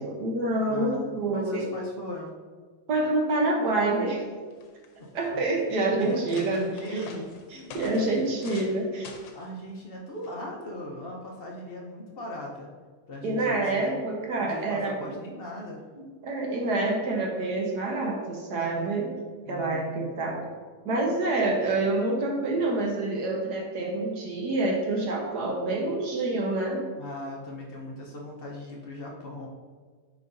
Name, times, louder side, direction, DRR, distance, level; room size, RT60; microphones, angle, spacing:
voice 1, 0.0-1.7 2.9-4.2 5.1-6.6 7.7-9.1 13.2-15.1 15.9-19.1 19.5-20.4 20.8-26.8, right 2 dB, 60° right, 0 dB, 1.5 m, -27 dB
voice 2, 0.6-2.3 5.0-5.4 6.0-7.7 8.0-8.1 9.3-12.7 13.1-14.0 14.4-15.8 19.5-19.9 27.0-29.5, left 1 dB, 50° left, -2 dB, 0.7 m, -38 dB
sound 1, 4.2-4.3 4.5-5.1 5.7-5.8 6.1-8.8 9.0-9.5 10.2-10.5, left 5 dB, 80° left, 1.5 m, -46 dB
9.3 x 4.8 x 2.6 m, 1.5 s
omnidirectional pair, 2.1 m